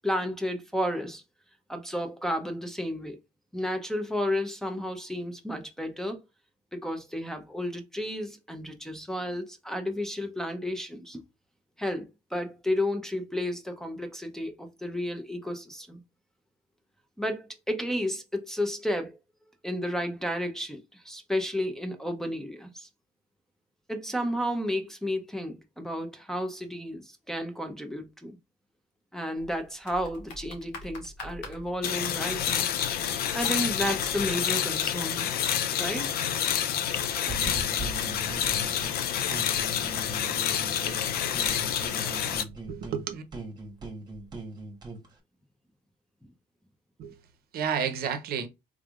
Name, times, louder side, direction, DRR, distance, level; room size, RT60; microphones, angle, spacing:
voice 1, 0.0-1.2 1.7-3.2 3.5-6.2 6.7-11.2 11.8-16.0 17.2-19.2 19.6-22.9 23.9-28.4 29.1-32.7 33.3-35.3 35.8-36.1, equal, 5° left, 0.6 m, -32 dB
sound 1, 29.4-34.3, left 2 dB, 90° left, 1.3 m, -45 dB
sound 2, 31.8-42.4, left 9 dB, 65° left, 0.5 m, -28 dB
sound 3, 37.3-39.0 39.3-41.1 41.3-45.1, right 2 dB, 25° right, 1.2 m, -39 dB
voice 2, 41.9-42.2 42.7-43.2 47.0-47.2 47.5-48.5, right 7 dB, 65° right, 0.7 m, -31 dB
3.6 x 3.3 x 2.4 m
cardioid pair, 110°, 17 cm